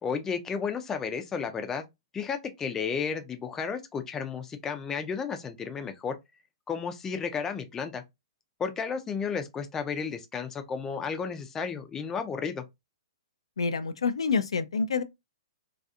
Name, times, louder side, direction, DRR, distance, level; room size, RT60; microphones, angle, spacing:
voice 1, 0.0-1.8 2.1-6.2 6.7-8.0 8.6-12.6, left 6 dB, 15° left, 0.4 m, -33 dB
voice 2, 13.6-15.0, left 5 dB, 85° left, 0.3 m, -27 dB
2.7 x 2.3 x 2.3 m
hypercardioid pair, 130°, 3 cm